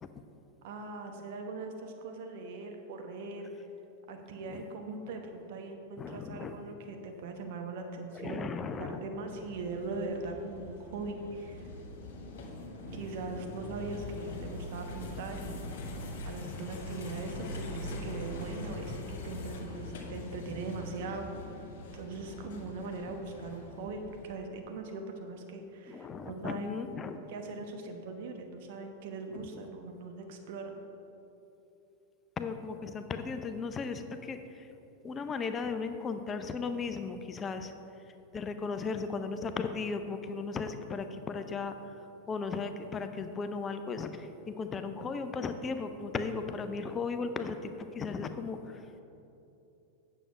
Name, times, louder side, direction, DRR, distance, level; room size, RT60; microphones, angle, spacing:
voice 1, 0.6-3.5 4.1-8.5 8.8-11.7 12.9-16.0 16.2-26.8 27.3-30.7, right 3 dB, 50° right, 4 dB, 1.1 m, -40 dB
voice 2, 6.0-6.6 8.1-9.0 25.9-27.2 29.6-29.7 32.4-34.4 35.0-37.7 38.3-41.7 42.3-48.8, left 4 dB, 20° left, 8 dB, 0.6 m, -36 dB
sound 1, 9.3-24.4, left 2 dB, 55° left, 1.7 m, -42 dB
9.1 x 7.0 x 4.9 m, 2.9 s
figure-of-eight pair, 90°, 0 cm